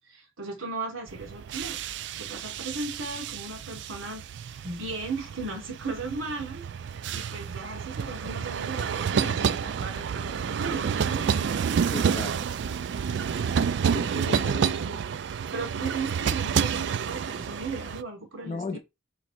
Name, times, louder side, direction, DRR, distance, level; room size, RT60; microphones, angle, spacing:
voice 1, 0.1-1.8 2.2-4.2 4.6-6.6 7.1-11.6 14.2-15.0 15.5-18.8, right 3 dB, 85° right, 1.3 m, -36 dB
sound 1, 1.1-18.0, right 7 dB, 60° right, 0.3 m, -29 dB
voice 2, 11.9-12.4 13.9-14.6 18.5-18.8, left 3 dB, 35° left, 0.4 m, -35 dB
3.5 x 3.1 x 4.3 m
head